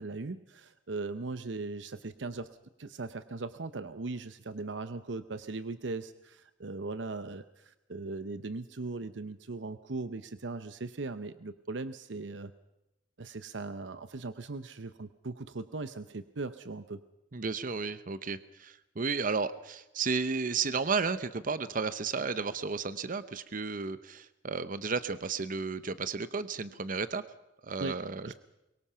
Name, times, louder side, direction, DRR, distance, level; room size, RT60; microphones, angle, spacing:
voice 1, 0.0-2.5 2.8-12.5 13.2-17.0 27.8-27.9 28.2-28.3, right 3 dB, 80° right, 12 dB, 0.8 m, -39 dB
voice 2, 17.3-27.2 27.6-28.3, right 4 dB, 50° right, 13 dB, 0.8 m, -33 dB
23.5 x 23.0 x 5.7 m, 0.93 s
head